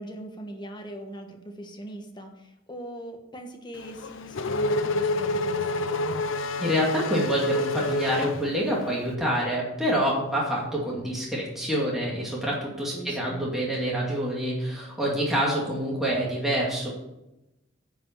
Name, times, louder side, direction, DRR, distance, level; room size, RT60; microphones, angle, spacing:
voice 1, 0.0-6.1 12.9-13.4, right 1 dB, 25° left, 4 dB, 1.4 m, -41 dB
Race car auto racing / Accelerating revving vroom, 3.8-9.0, left 2 dB, 80° left, 0.6 m, -28 dB
voice 2, 6.6-16.9, equal, ahead, -5 dB, 2.4 m, -27 dB
9.8 x 5.5 x 7.3 m, 0.92 s
head